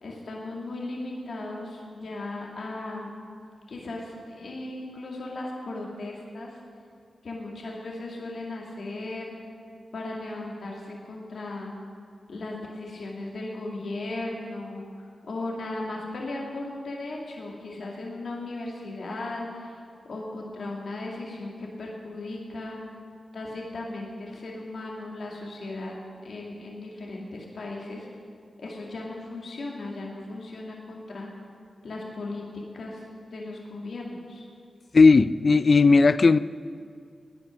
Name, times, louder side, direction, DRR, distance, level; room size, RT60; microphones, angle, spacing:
voice 1, 0.0-3.2 3.7-6.6 7.2-9.3 9.9-11.7 12.3-19.8 20.1-22.8 23.3-25.9 26.2-28.1 28.6-31.3 31.8-34.5, left 2 dB, 70° left, -2 dB, 2.1 m, -36 dB
voice 2, 34.9-36.4, left 4 dB, 55° left, 16 dB, 0.4 m, -16 dB
16.0 x 9.9 x 6.3 m, 2.2 s
cardioid pair, 50°, 0 cm